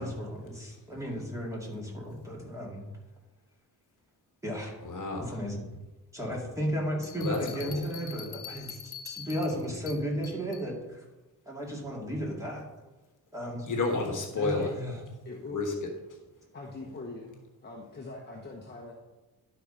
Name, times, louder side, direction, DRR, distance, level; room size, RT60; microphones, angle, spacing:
voice 1, 0.0-2.8 4.4-4.7 5.2-5.7 6.1-11.1 11.5-12.7 13.3-13.7 14.3-15.0, equal, 10° right, -3 dB, 2.2 m, -34 dB
voice 2, 4.8-5.3 7.2-7.4 7.6-7.8 13.7-14.7 15.5-15.9, left 3 dB, 50° left, 2 dB, 1.3 m, -30 dB
sound 1, 7.0-10.7, left 7 dB, 75° left, 1.0 m, -44 dB
voice 3, 15.2-15.6 16.5-18.9, left 3 dB, 25° left, -2 dB, 1.1 m, -42 dB
11.5 x 4.3 x 5.0 m, 1.1 s
wide cardioid pair, 145°, 39 cm